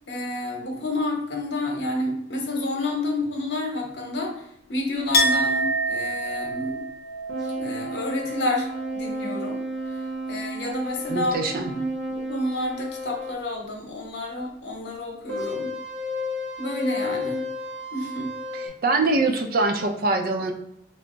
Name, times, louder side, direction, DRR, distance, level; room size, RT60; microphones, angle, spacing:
voice 1, 0.0-6.8 7.6-8.7 8.9-9.6 9.8-11.3 11.7-15.7 16.6-17.5 17.9-18.3, left 2 dB, 80° left, 0 dB, 0.9 m, -29 dB
Chink clink, 5.1-10.7 10.9-11.8, right 1 dB, 55° left, 0.6 m, -29 dB
sound 1, 7.3-13.4 15.3-18.7, left 1 dB, 70° right, 0.8 m, -32 dB
voice 2, 11.1-11.7 18.8-20.5, right 3 dB, 50° right, 5 dB, 0.4 m, -23 dB
3.4 x 2.0 x 3.8 m, 0.76 s
head